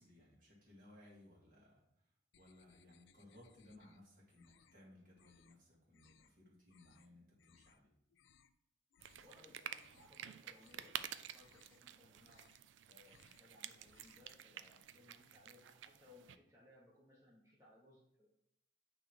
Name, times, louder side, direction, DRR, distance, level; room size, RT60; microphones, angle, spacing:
voice 1, 0.0-7.9, left 1 dB, 45° right, -4 dB, 2.2 m, -63 dB
sound 1, 2.3-4.0 4.3-4.8 5.1-5.6 5.9-6.3 6.7-7.1 7.4-7.8 8.1-8.6 8.9-9.3 9.6-10.2 10.5-11.0 11.3-11.8 12.1-12.7 13.0-13.5 13.8-14.3, left 8 dB, 75° left, 0.4 m, -70 dB
sound 2, 9.0-16.4, right 10 dB, 75° right, 0.4 m, -51 dB
voice 2, 9.1-12.4 12.8-18.3, left 2 dB, 15° right, -7 dB, 1.1 m, -65 dB
8.8 x 3.1 x 4.4 m, 0.79 s
head